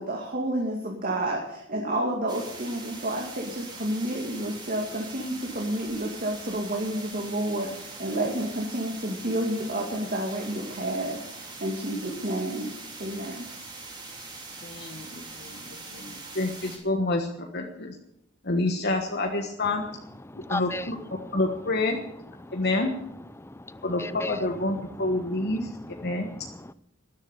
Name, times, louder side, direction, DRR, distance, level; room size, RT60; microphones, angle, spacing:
voice 1, 0.0-12.7 13.0-13.5, right 1 dB, 45° right, 0 dB, 2.3 m, -30 dB
sound 1, 2.3-16.8, right 3 dB, 20° right, 3.3 m, -42 dB
voice 2, 14.6-17.3 17.5-17.9 18.4-19.8 20.5-21.0 21.3-22.0 22.5-22.9 23.8-25.7 26.0-26.3, left 2 dB, 55° left, 3 dB, 1.4 m, -28 dB
voice 3, 20.3-20.9 21.2-21.3 22.4-22.5 23.4-24.4 25.9-26.7, left 2 dB, 15° left, 15 dB, 0.6 m, -37 dB
13.0 x 11.0 x 8.5 m, 0.81 s
head